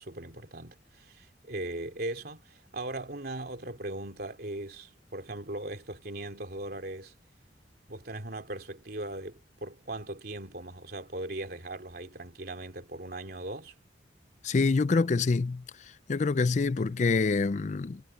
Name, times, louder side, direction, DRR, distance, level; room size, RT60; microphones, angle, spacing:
voice 1, 0.0-7.1 7.9-13.7 16.9-17.0, right 2 dB, 60° right, 3.3 m, -39 dB
voice 2, 14.4-15.6 16.1-18.0, left 4 dB, 40° left, 0.4 m, -26 dB
head